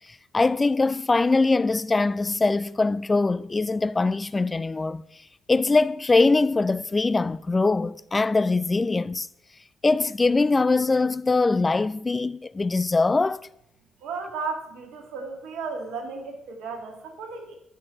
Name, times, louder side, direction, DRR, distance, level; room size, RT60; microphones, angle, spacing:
voice 1, 0.3-5.0 5.5-9.3 9.8-13.5, left 3 dB, 25° left, 0.4 m, -22 dB
voice 2, 14.0-17.5, right 4 dB, 70° right, 2.0 m, -34 dB
11.0 x 6.4 x 6.7 m
hypercardioid pair, 45°, 0 cm